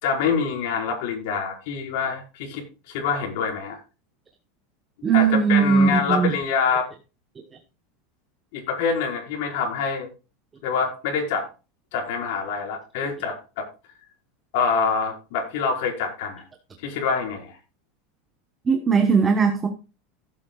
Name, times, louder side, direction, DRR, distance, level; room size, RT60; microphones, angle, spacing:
voice 1, 0.0-3.8 5.1-6.9 8.5-10.1 10.6-11.5 11.9-13.7 14.5-16.4 16.8-17.6, left 5 dB, 60° left, 4.9 m, -26 dB
voice 2, 5.0-6.3 18.7-19.7, right 6 dB, 15° right, 1.0 m, -19 dB
16.0 x 8.7 x 2.4 m
supercardioid pair, 165°, 0 cm